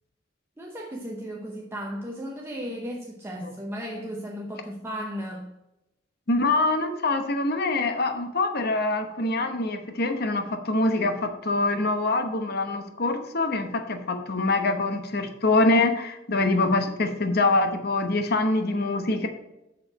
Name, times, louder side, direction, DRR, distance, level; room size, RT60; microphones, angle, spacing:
voice 1, 0.6-5.5, equal, 15° right, -1 dB, 0.8 m, -35 dB
voice 2, 6.3-19.3, left 2 dB, 55° left, 7 dB, 1.0 m, -24 dB
7.0 x 6.5 x 4.8 m, 0.93 s
head